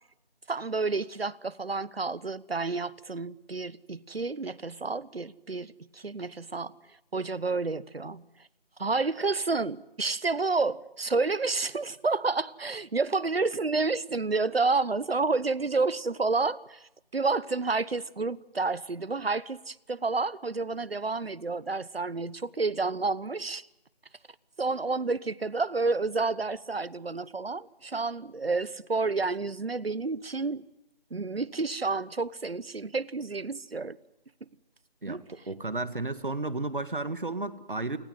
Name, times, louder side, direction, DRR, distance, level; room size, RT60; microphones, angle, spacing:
voice 1, 0.5-6.7 7.1-8.2 8.8-23.7 24.6-30.7 31.1-34.0 35.1-35.2, right 3 dB, 75° right, 1.2 m, -30 dB
voice 2, 35.5-38.0, right 2 dB, 60° right, 1.9 m, -32 dB
29.0 x 19.5 x 9.4 m
figure-of-eight pair, 180°, 30 cm